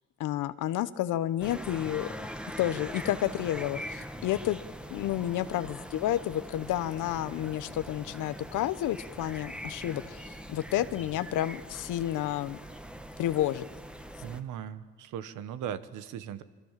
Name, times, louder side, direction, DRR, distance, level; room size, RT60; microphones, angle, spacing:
voice 1, 0.2-2.1 2.6-4.6 4.9-12.6 13.2-13.6, left 13 dB, 85° left, 13 dB, 1.0 m, -30 dB
sound 1, 1.4-14.4, equal, 5° right, 1.6 m, -42 dB
voice 2, 14.2-16.4, right 9 dB, 90° right, 12 dB, 1.3 m, -38 dB
27.5 x 23.0 x 7.5 m, 1.2 s
cardioid pair, 90°, 30 cm